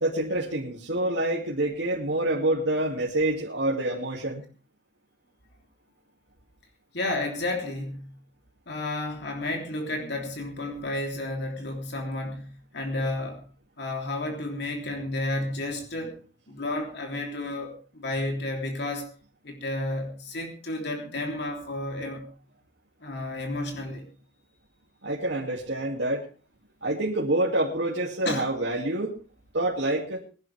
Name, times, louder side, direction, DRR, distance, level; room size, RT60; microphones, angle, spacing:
voice 1, 0.0-4.4 25.0-26.2 26.8-29.1 29.5-30.2, right 1 dB, 75° right, -3 dB, 2.6 m, -27 dB
voice 2, 6.9-8.1 8.7-13.4 13.8-16.1 16.5-19.1 19.4-22.3 23.0-24.0 28.2-28.4, left 2 dB, 65° left, 2 dB, 3.3 m, -31 dB
22.0 x 11.5 x 3.5 m, 0.36 s
head